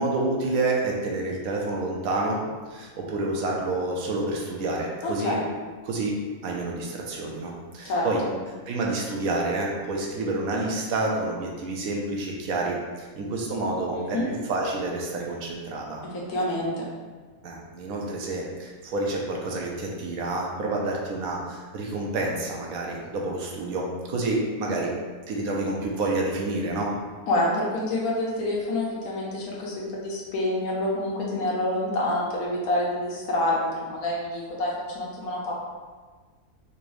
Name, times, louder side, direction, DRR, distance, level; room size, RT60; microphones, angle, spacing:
voice 1, 0.0-2.4 2.7-5.4 5.8-8.2 8.7-16.0 17.4-25.0 25.3-27.0, right 2 dB, 75° right, -2 dB, 1.1 m, -28 dB
voice 2, 5.0-5.4 7.8-8.3 13.9-14.3 16.3-16.8 27.3-35.5, left 1 dB, 75° left, -4 dB, 1.3 m, -27 dB
4.0 x 2.6 x 3.1 m, 1.4 s
omnidirectional pair, 1.6 m